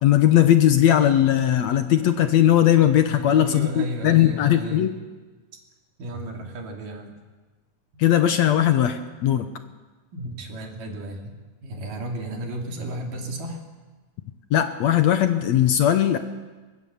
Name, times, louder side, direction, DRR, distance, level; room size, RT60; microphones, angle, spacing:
voice 1, 0.0-4.9 8.0-9.5 14.5-16.2, left 11 dB, 65° left, 8 dB, 1.9 m, -19 dB
voice 2, 3.1-4.9 6.0-7.1 10.1-11.3 11.6-13.6, right 1 dB, 75° right, 2 dB, 4.4 m, -33 dB
23.5 x 22.0 x 7.0 m, 1.3 s
omnidirectional pair, 3.8 m